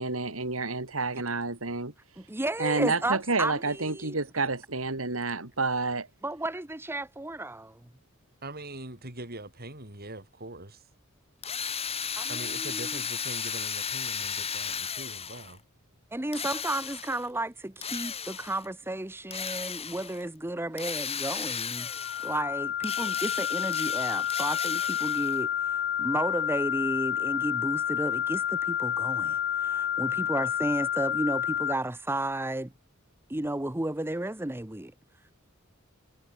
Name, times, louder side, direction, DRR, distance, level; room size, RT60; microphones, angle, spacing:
voice 1, 0.0-1.9 2.6-6.1, right 3 dB, 75° right, 3.5 m, -29 dB
voice 2, 2.2-4.2 6.2-7.8 12.2-13.0 16.1-21.9 22.2-32.7 33.3-34.9, right 1 dB, 10° right, 0.9 m, -33 dB
voice 3, 8.4-10.8 12.3-15.6, right 2 dB, 50° right, 7.7 m, -42 dB
Drill, 11.4-15.6 16.3-17.3 17.8-18.7 19.3-20.2 20.8-22.4 22.8-25.4, left 7 dB, 30° left, 5.5 m, -35 dB
sound 1, 21.8-31.7, left 10 dB, 55° left, 0.9 m, -29 dB
head